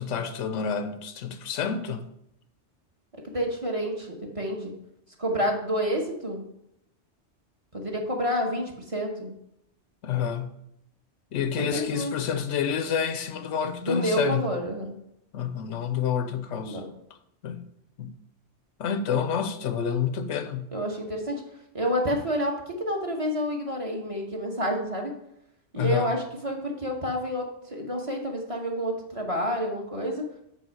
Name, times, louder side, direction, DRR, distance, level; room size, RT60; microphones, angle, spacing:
voice 1, 0.0-2.1 10.0-10.6 11.3-14.5 15.3-16.8 17.4-17.6 18.0-18.2 18.8-20.7 25.8-26.1, left 7 dB, 85° left, 1.0 m, -28 dB
voice 2, 3.2-4.7 5.2-6.4 7.7-9.3 11.7-12.2 13.8-14.9 16.6-16.9 20.7-21.4 21.7-25.1 25.7-30.3, equal, 30° right, 1.2 m, -29 dB
8.5 x 3.5 x 6.2 m
omnidirectional pair, 1.2 m